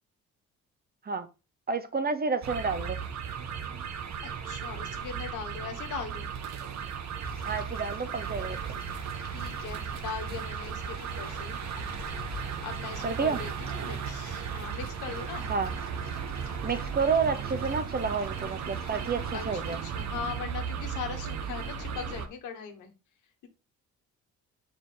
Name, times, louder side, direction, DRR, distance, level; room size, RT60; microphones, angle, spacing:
voice 1, 1.7-3.0 7.4-8.8 13.0-13.4 15.5-15.7 16.6-19.8, right 5 dB, 30° right, 0.9 m, -30 dB
sound 1, 2.4-22.3, right 7 dB, 65° right, 1.1 m, -36 dB
voice 2, 4.4-6.3 9.3-11.6 12.6-15.5 19.3-22.9, left 6 dB, 85° left, 1.6 m, -40 dB
sound 2, 7.2-19.8, left 4 dB, 30° left, 1.7 m, -48 dB
6.6 x 4.9 x 3.8 m
cardioid pair, 90°, 30 cm